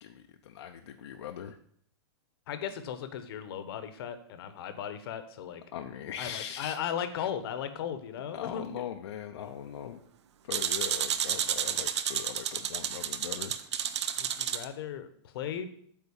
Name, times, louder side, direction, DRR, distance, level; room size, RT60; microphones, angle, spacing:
voice 1, 0.0-1.6 5.7-6.8 8.3-10.0 10.4-13.6, left 9 dB, 75° left, 4 dB, 0.7 m, -40 dB
voice 2, 2.5-5.6 6.2-8.8 14.2-15.7, left 9 dB, 60° left, 10 dB, 1.0 m, -37 dB
sound 1, 10.5-14.6, right 9 dB, 80° right, 0.7 m, -31 dB
8.4 x 4.0 x 7.1 m, 0.63 s
supercardioid pair, 160°, 14 cm